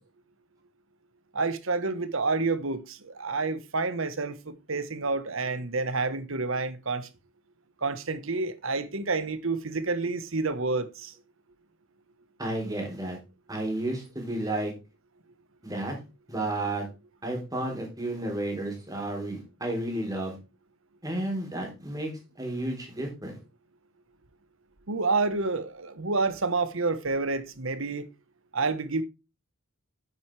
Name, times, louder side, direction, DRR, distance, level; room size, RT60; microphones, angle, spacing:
voice 1, 1.3-7.1 7.8-11.1 24.9-28.1 28.5-29.0, right 3 dB, 65° right, 1.2 m, -29 dB
voice 2, 12.4-13.2 13.5-14.7 15.6-16.0 16.3-16.9 17.2-20.4 21.0-23.4, right 1 dB, 15° right, 3.8 m, -32 dB
9.5 x 8.0 x 3.3 m
head